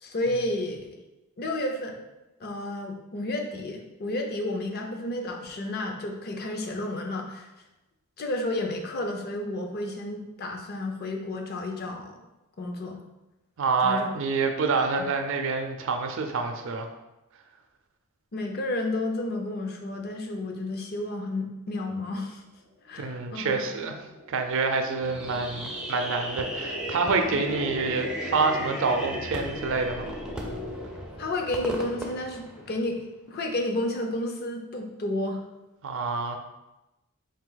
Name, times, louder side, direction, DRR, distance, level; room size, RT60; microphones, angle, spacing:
voice 1, 0.0-1.0 1.4-2.0 2.4-7.5 8.2-12.2 12.6-13.0 13.8-14.1 14.8-14.9 18.3-22.4 22.9-23.7 27.3-27.4 31.2-35.4, left 1 dB, 45° left, 3 dB, 0.5 m, -31 dB
voice 2, 13.6-16.9 23.0-24.0 24.3-30.1 35.8-36.4, right 4 dB, 60° right, 5 dB, 0.4 m, -27 dB
sound 1, 22.9-31.7, left 1 dB, 75° left, 1.0 m, -38 dB
Fireworks, 25.0-33.1, right 1 dB, 5° right, 0.4 m, -38 dB
4.2 x 2.7 x 3.9 m, 0.99 s
head